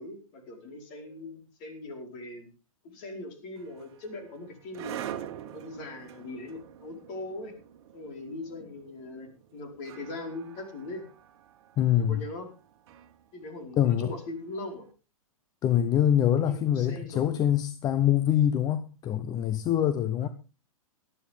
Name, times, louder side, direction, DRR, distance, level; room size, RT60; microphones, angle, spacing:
voice 1, 0.0-2.5 2.8-5.0 5.5-7.5 7.9-11.0 12.0-12.5 13.3-14.8 16.4-17.3, left 2 dB, 35° left, 4.8 m, -40 dB
sound 1, 3.6-14.7, right 10 dB, 50° right, 1.6 m, -45 dB
voice 2, 11.8-12.2 13.8-14.1 15.6-20.3, left 10 dB, 20° left, 0.8 m, -24 dB
18.5 x 12.5 x 3.7 m
figure-of-eight pair, 115°, 18 cm